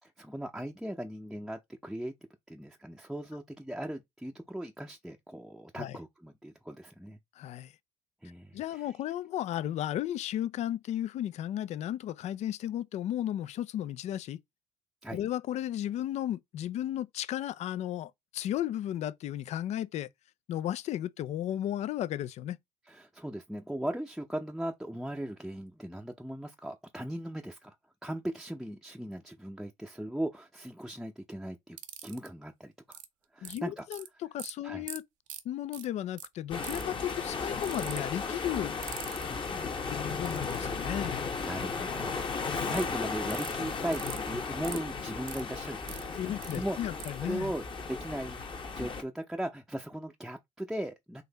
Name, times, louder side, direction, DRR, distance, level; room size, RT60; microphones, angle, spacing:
voice 1, 0.2-2.1 2.5-7.2 8.2-8.9 15.0-15.2 22.9-27.8 28.0-31.8 32.0-33.0 33.3-33.9 34.6-34.9 39.3-39.6 41.4-47.6 47.9-48.4 48.7-51.2, right 1 dB, ahead, 0.6 m, -38 dB
voice 2, 7.4-7.7 8.5-14.4 15.1-20.1 20.5-22.6 33.4-34.0 34.3-35.0 35.4-38.8 39.9-41.2 42.4-42.7 46.2-47.5, left 12 dB, 60° left, 0.4 m, -34 dB
sound 1, 31.8-32.3 32.9-33.1 33.4-34.1 34.4-34.5 34.9-35.0 35.3-35.4 35.7-35.9 36.2-36.3 36.6-36.9 37.6-38.0 38.8-39.2 40.3-40.6 42.7-42.8 43.3-43.5 43.9-44.2 44.6-44.8 45.3-46.0 46.4-46.6 47.0-47.1, right 11 dB, 70° right, 0.7 m, -41 dB
sound 2, 36.5-49.0, left 4 dB, 40° left, 1.1 m, -35 dB
4.0 x 2.6 x 4.0 m
hypercardioid pair, 65°, 13 cm